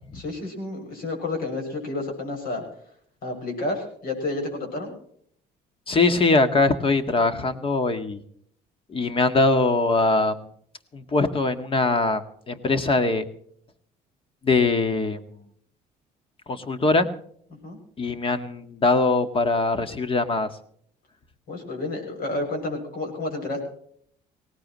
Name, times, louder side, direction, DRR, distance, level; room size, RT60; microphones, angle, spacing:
voice 1, 0.1-2.6 3.2-4.9 17.6-17.8 21.5-23.6, left 2 dB, 60° left, 3 dB, 6.8 m, -30 dB
voice 2, 5.9-8.2 8.9-10.4 10.9-12.2 12.5-13.2 14.4-15.2 16.5-17.1 18.0-20.5, left 3 dB, 30° left, 10 dB, 1.7 m, -22 dB
19.5 x 18.0 x 3.1 m, 0.64 s
cardioid pair, 110°, 17 cm